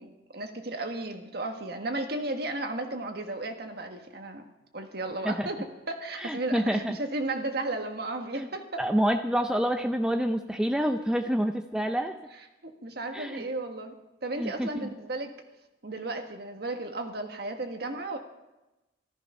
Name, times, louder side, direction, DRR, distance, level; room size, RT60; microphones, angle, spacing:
voice 1, 0.0-4.4 4.7-8.8 12.6-14.0 14.2-15.3 15.8-18.2, right 2 dB, 60° right, 4 dB, 1.5 m, -34 dB
voice 2, 6.2-7.0 8.4-8.5 8.8-12.1 13.1-13.4 14.4-14.9, equal, 5° right, 6 dB, 0.5 m, -27 dB
14.0 x 13.5 x 5.5 m, 1.0 s
head